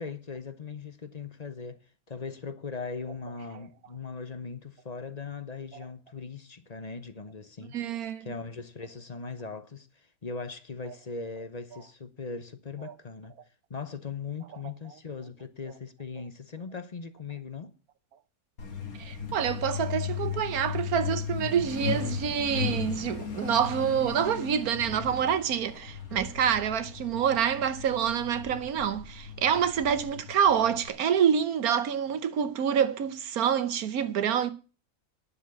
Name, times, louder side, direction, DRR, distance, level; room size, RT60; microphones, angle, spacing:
voice 1, 0.0-1.8 2.1-7.8 8.2-9.9 10.2-13.4 13.7-17.7, left 4 dB, 35° left, 0.8 m, -39 dB
voice 2, 7.7-8.3 12.8-12.9 19.0-34.5, right 8 dB, 85° right, 1.4 m, -27 dB
Truck, 18.6-30.9, left 7 dB, 75° left, 2.6 m, -36 dB
10.0 x 6.9 x 8.3 m
omnidirectional pair, 1.5 m